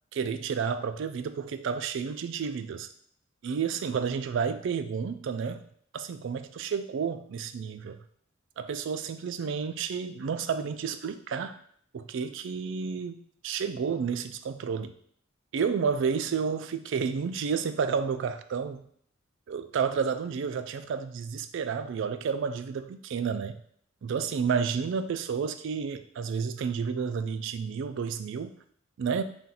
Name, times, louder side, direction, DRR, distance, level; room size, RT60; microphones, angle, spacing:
voice 1, 0.1-2.9 3.4-5.6 5.9-8.0 8.6-11.5 11.9-13.2 13.4-14.9 15.5-18.8 19.5-23.6 24.0-28.5 29.0-29.2, right 6 dB, 65° right, 11 dB, 0.3 m, -31 dB
4.3 x 2.5 x 3.9 m, 0.64 s
head